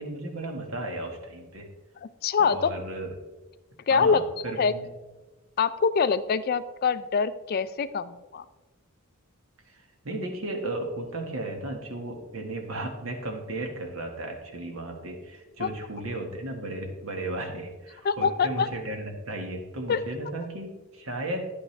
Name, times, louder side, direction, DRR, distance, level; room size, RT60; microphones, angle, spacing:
voice 1, 0.0-1.7 2.4-3.1 3.9-4.9 9.7-9.8 10.0-21.5, right 1 dB, 70° right, 4 dB, 1.5 m, -35 dB
voice 2, 2.2-2.7 3.9-4.2 4.6-4.7 5.6-8.4 15.6-15.7 18.0-18.7 19.9-20.0, left 5 dB, 45° left, 15 dB, 0.4 m, -24 dB
10.0 x 8.8 x 3.2 m, 1.2 s
head